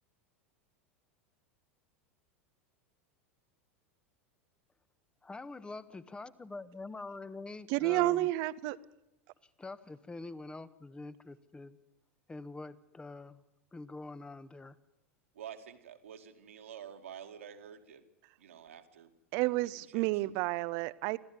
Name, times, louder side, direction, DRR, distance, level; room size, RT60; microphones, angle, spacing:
voice 1, 5.2-8.3 9.6-11.8 12.3-13.4 13.7-14.8, left 3 dB, 15° left, 15 dB, 1.3 m, -45 dB
voice 2, 7.7-8.8 19.3-21.2, right 18 dB, 50° right, 17 dB, 0.9 m, -30 dB
voice 3, 15.3-18.0 18.4-20.1, right 8 dB, 75° right, 6 dB, 2.3 m, -49 dB
25.0 x 15.0 x 9.7 m, 0.91 s
figure-of-eight pair, 85°, 7 cm